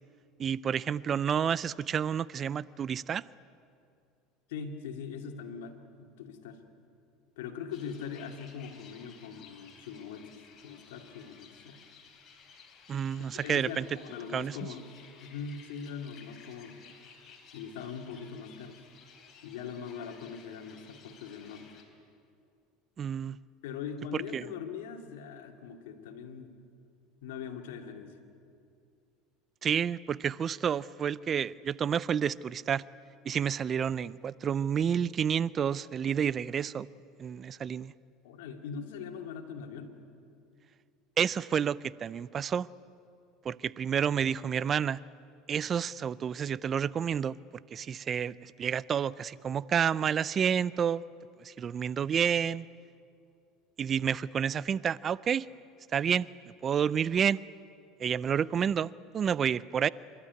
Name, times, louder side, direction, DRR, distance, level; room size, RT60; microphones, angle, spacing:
voice 1, 0.4-3.3 12.9-13.9 14.3-14.6 23.0-23.4 24.1-24.5 29.6-32.8 33.2-36.9 37.2-37.9 41.2-42.7 43.4-45.0 45.5-47.4 47.7-51.0 51.4-52.7 53.8-55.5 55.9-56.3 56.6-57.4 58.0-59.9, right 8 dB, 35° right, 0.4 m, -29 dB
voice 2, 4.5-6.6 7.4-10.3 10.6-11.8 13.3-14.8 15.2-16.8 17.5-18.8 19.4-21.7 23.6-26.5 27.2-28.2 38.2-40.0, left 6 dB, 85° left, 2.3 m, -41 dB
sound 1, 7.7-21.8, left 6 dB, 40° left, 3.9 m, -56 dB
28.0 x 13.0 x 9.4 m
supercardioid pair, 105°, 0 cm